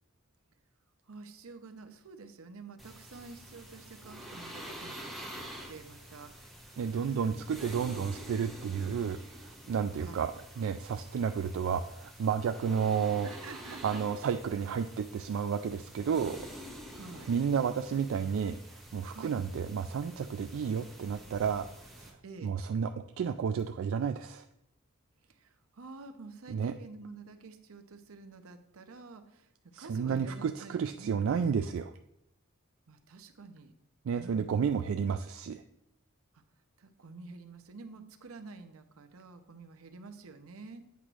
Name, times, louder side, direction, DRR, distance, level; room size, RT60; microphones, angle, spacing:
voice 1, 1.1-7.8 9.9-10.2 13.2-14.0 16.9-17.3 19.1-19.3 22.2-22.6 25.2-29.5 29.8-31.2 32.9-33.7 34.1-34.7 36.3-36.4 36.8-40.8, right 4 dB, 85° right, 8 dB, 0.7 m, -49 dB
sound 1, 2.8-22.1, equal, ahead, 1.3 m, -48 dB
voice 2, 6.8-13.3 13.8-16.4 17.3-21.7 22.0-22.1 22.4-22.9 23.2-24.4 26.5-26.7 29.7-31.9 34.0-35.6, right 6 dB, 65° right, 7 dB, 0.3 m, -31 dB
8.2 x 3.0 x 6.1 m, 0.79 s
head